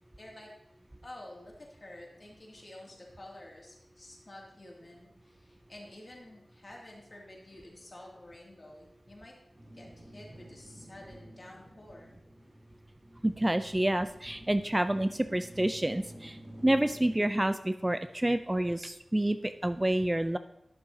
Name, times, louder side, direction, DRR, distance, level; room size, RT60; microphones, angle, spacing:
voice 1, 0.2-0.5 1.0-9.3 9.7-12.1, left 1 dB, 45° left, -2 dB, 2.4 m, -50 dB
sound 1, 9.5-17.2, right 1 dB, 65° right, 3.3 m, -51 dB
voice 2, 13.2-20.4, right 1 dB, 20° right, 11 dB, 0.4 m, -28 dB
10.5 x 6.9 x 2.8 m, 0.83 s
cardioid pair, 40°, 0 cm